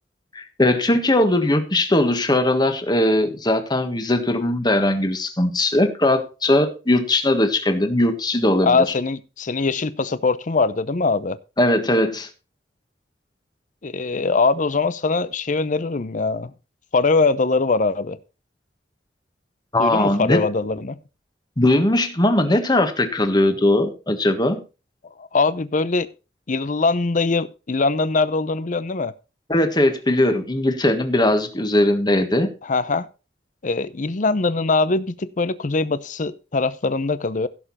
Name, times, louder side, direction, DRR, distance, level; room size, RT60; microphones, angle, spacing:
voice 1, 0.3-8.8 11.6-12.3 19.7-20.4 21.6-24.6 29.5-32.5, left 1 dB, 25° left, 7 dB, 1.6 m, -19 dB
voice 2, 8.6-11.4 13.8-16.5 16.9-18.2 19.8-21.0 25.2-26.1 26.5-29.1 32.6-33.1 33.6-37.5, left 3 dB, 45° left, 15 dB, 0.6 m, -22 dB
16.0 x 6.8 x 4.2 m, 0.31 s
head